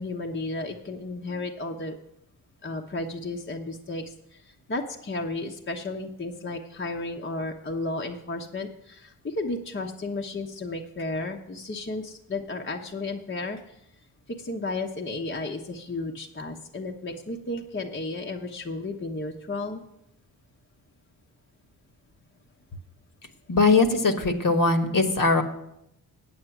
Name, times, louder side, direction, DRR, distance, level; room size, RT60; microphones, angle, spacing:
voice 1, 0.0-2.0 2.6-13.6 14.3-19.8, left 2 dB, 25° left, 2 dB, 1.1 m, -33 dB
voice 2, 23.5-25.4, left 3 dB, 50° left, 6 dB, 1.5 m, -21 dB
8.6 x 8.0 x 6.0 m, 0.79 s
supercardioid pair, 50°, 43 cm